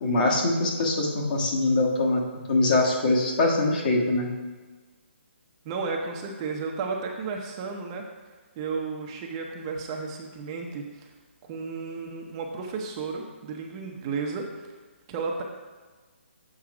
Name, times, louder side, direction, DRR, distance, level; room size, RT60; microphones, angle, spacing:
voice 1, 0.0-4.4, left 2 dB, 45° left, -1 dB, 1.5 m, -23 dB
voice 2, 5.6-8.0 8.6-11.1 11.4-14.5 15.1-15.4, right 4 dB, 25° right, 1 dB, 0.6 m, -33 dB
7.5 x 4.7 x 4.8 m, 1.4 s
hypercardioid pair, 160°, 7 cm